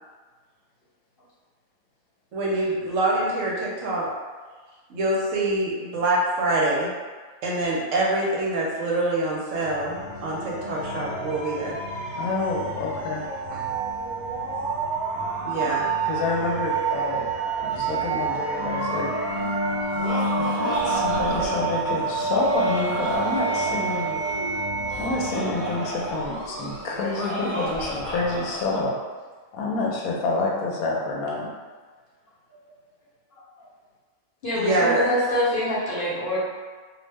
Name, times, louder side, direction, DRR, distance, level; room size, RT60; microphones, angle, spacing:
voice 1, 2.3-4.1 4.9-6.9 7.4-11.8 13.5-13.6 15.4-15.9 34.5-35.1, right 2 dB, 70° right, -4 dB, 0.9 m, -25 dB
sound 1, 9.6-27.2, right 3 dB, 40° right, 1.0 m, -28 dB
voice 2, 12.1-13.3 16.0-17.3 17.6-19.1 20.3-24.2 25.0-29.0 29.5-31.5, left 3 dB, 85° left, -2 dB, 1.1 m, -28 dB
Laughter, 19.7-28.8, equal, 10° right, 0.9 m, -32 dB
voice 3, 34.4-36.4, left 1 dB, 45° left, -8 dB, 0.9 m, -25 dB
2.6 x 2.1 x 3.3 m, 1.4 s
omnidirectional pair, 1.5 m